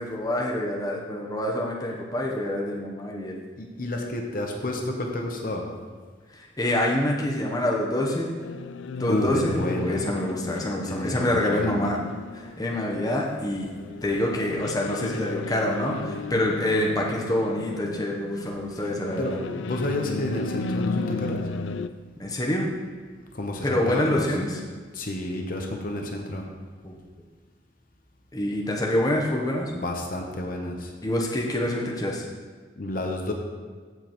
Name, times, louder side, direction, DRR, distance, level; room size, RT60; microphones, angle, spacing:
voice 1, 0.0-3.4 6.3-8.3 9.0-12.1 12.3-13.7 14.0-19.4 22.2-22.7 23.6-24.6 26.8-26.9 28.3-29.7 31.0-32.2, left 1 dB, 20° left, -2 dB, 0.8 m, -26 dB
voice 2, 3.6-5.6 9.1-10.0 10.9-11.9 19.2-21.4 23.3-24.3 24.9-26.4 29.7-30.9 32.8-33.3, left 1 dB, 45° left, 2 dB, 0.8 m, -30 dB
sound 1, 8.4-21.9, left 4 dB, 75° left, 0.3 m, -35 dB
15.5 x 5.1 x 3.0 m, 1.5 s
head